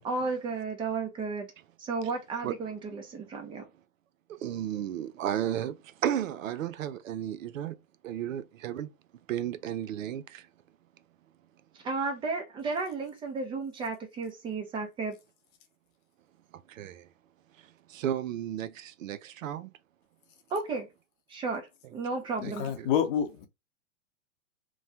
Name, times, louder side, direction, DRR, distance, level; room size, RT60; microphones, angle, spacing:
voice 1, 0.0-1.5 1.8-3.6 11.7-15.2 20.5-20.9 21.3-22.7, right 4 dB, 10° right, 0.5 m, -33 dB
voice 2, 4.3-7.8 8.0-8.9 9.3-10.5 16.7-17.1 17.9-19.7 22.4-22.9, right 10 dB, 70° right, 0.5 m, -33 dB
voice 3, 22.4-23.5, left 9 dB, 40° left, 0.7 m, -28 dB
3.0 x 2.2 x 2.7 m
hypercardioid pair, 125°, 41 cm